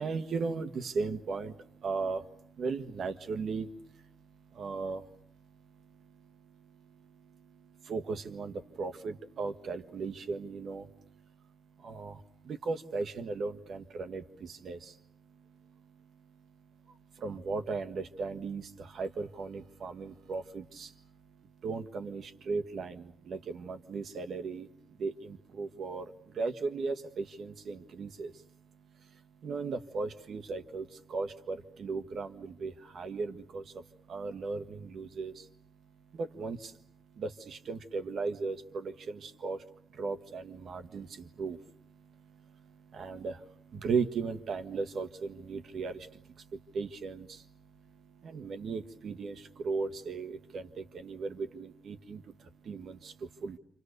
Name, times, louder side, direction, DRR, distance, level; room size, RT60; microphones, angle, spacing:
voice 1, 0.0-53.6, right 4 dB, 70° right, 8 dB, 1.6 m, -38 dB
29.0 x 27.0 x 6.8 m, 0.66 s
wide cardioid pair, 150°, 0 cm